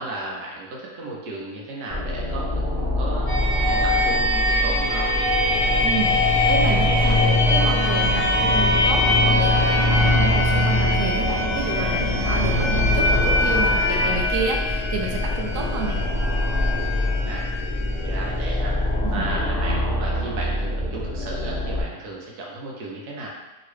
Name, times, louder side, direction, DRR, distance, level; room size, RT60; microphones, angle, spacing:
voice 1, 0.0-3.3 3.6-5.1 12.4-12.7 17.2-17.5 18.0-23.3, right 2 dB, 85° right, -2 dB, 1.2 m, -34 dB
sound 1, 1.9-21.8, left 1 dB, 10° right, 1.1 m, -25 dB
sound 2, 3.3-18.9, left 1 dB, 30° left, 0.6 m, -23 dB
voice 2, 5.8-16.0 19.0-19.3, right 4 dB, 65° right, 0 dB, 0.8 m, -30 dB
sound 3, 7.1-14.2, left 2 dB, 70° left, 0.8 m, -29 dB
2.9 x 2.7 x 3.1 m, 1.0 s
omnidirectional pair, 1.6 m